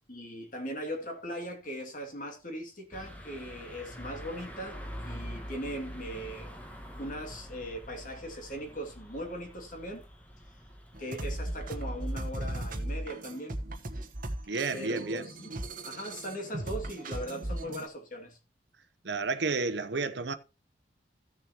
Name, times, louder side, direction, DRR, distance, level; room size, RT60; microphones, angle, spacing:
voice 1, 0.1-4.8 5.0-6.5 7.0-10.1 11.0-13.5 14.7-15.5 15.8-18.4, equal, 45° left, 2.3 m, -39 dB
sound 1, 2.9-12.4, equal, 10° left, 1.4 m, -45 dB
sound 2, 10.9-17.9, right 1 dB, 45° right, 1.2 m, -37 dB
voice 2, 14.5-15.3 19.0-20.3, right 4 dB, 70° right, 0.8 m, -31 dB
15.5 x 6.9 x 2.9 m
head